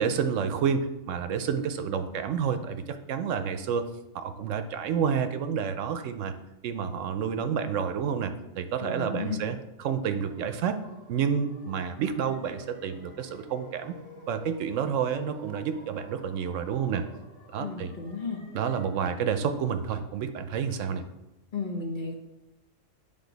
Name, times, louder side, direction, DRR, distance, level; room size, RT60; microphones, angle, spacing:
voice 1, 0.0-3.8 4.1-6.3 6.6-10.8 11.1-13.9 14.3-17.0 17.5-17.9 18.5-21.0, right 7 dB, 75° right, 9 dB, 0.9 m, -29 dB
voice 2, 8.8-9.4 17.6-18.4 21.5-22.1, left 4 dB, 45° left, 2 dB, 0.9 m, -34 dB
sound 1, 10.2-18.9, equal, 65° left, 1.8 m, -51 dB
9.6 x 3.7 x 3.9 m, 0.96 s
omnidirectional pair, 1.3 m